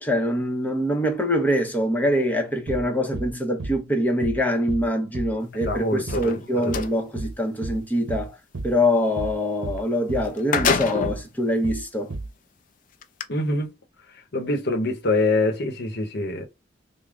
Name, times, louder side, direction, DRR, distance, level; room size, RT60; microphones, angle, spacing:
voice 1, 0.0-8.3 8.6-12.1, left 1 dB, 10° left, 0.8 m, -24 dB
sound 1, 2.7-2.9 3.1-3.3 3.6-3.8 4.2-4.4 4.7-4.9 5.1-5.3 5.6-5.8 6.1-6.3 6.7-6.9 7.2-7.4 7.6-7.8 8.1-8.3 8.5-8.7 9.2-9.4 9.6-9.8 10.1-10.3 10.6-10.8 11.0-11.2 11.6-11.8 12.1-12.3, right 2 dB, 75° right, 0.8 m, -32 dB
voice 2, 5.7-6.3 6.6-6.8 13.3-13.7 14.3-16.4, left 2 dB, 60° left, 0.9 m, -24 dB
sound 2, 6.0-6.9 9.8-9.9 10.2-11.3 12.0-12.1 13.0-13.2, left 5 dB, 45° left, 0.4 m, -26 dB
3.5 x 2.2 x 3.6 m
head